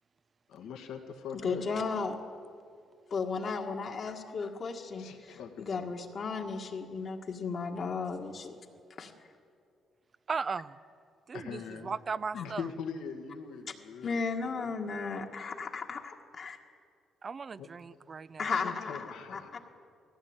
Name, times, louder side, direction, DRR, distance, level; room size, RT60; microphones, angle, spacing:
voice 1, 0.5-1.7 5.0-5.9 11.3-11.9 12.3-14.7 17.6-17.7 18.5-19.6, left 6 dB, 90° left, 4 dB, 2.0 m, -42 dB
voice 2, 1.3-2.2 3.1-8.6 9.0-9.1 12.4-12.5 14.0-16.6 18.4-19.6, left 4 dB, 50° left, 1 dB, 1.7 m, -35 dB
voice 3, 10.3-10.8 11.3-12.7 17.2-18.6, right 5 dB, 40° right, 18 dB, 0.5 m, -37 dB
18.5 x 16.0 x 8.8 m, 2.4 s
cardioid pair, 90°, 0 cm